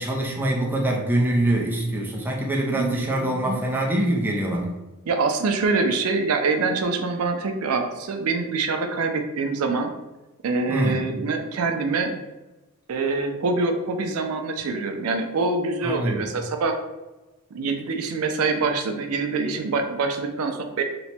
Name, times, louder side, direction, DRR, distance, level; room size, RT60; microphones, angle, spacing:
voice 1, 0.0-4.8 10.7-11.0 15.8-16.3, right 1 dB, 10° right, -2 dB, 0.5 m, -24 dB
voice 2, 2.8-3.6 5.1-9.9 10.4-12.2 12.9-16.7 17.5-20.8, right 3 dB, 90° right, 5 dB, 0.4 m, -25 dB
3.0 x 2.1 x 4.2 m, 1.1 s
head